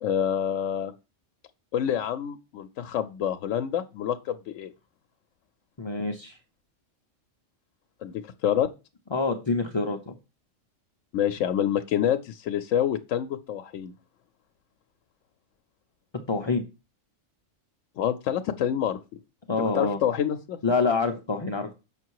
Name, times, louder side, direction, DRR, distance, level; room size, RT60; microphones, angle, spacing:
voice 1, 0.0-0.9 1.7-4.7 8.0-8.7 11.1-13.9 18.0-19.0 19.6-20.6, left 9 dB, 80° left, 7 dB, 0.9 m, -27 dB
voice 2, 5.8-6.4 9.1-10.1 16.3-16.6 19.5-20.0 20.6-21.8, left 4 dB, 35° left, 3 dB, 0.4 m, -26 dB
6.7 x 5.7 x 4.6 m, 0.29 s
omnidirectional pair, 1.3 m